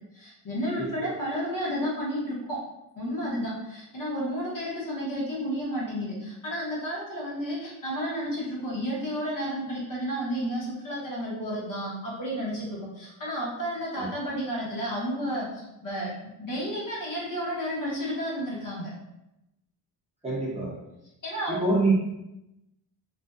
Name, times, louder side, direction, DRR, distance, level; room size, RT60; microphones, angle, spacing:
voice 1, 0.1-2.6 2.9-18.9 21.2-21.7, equal, 50° left, -6 dB, 0.9 m, -32 dB
voice 2, 20.2-20.7 21.5-21.9, right 2 dB, 15° right, -7 dB, 0.6 m, -25 dB
2.5 x 2.1 x 2.3 m, 0.90 s
wide cardioid pair, 120°, 42 cm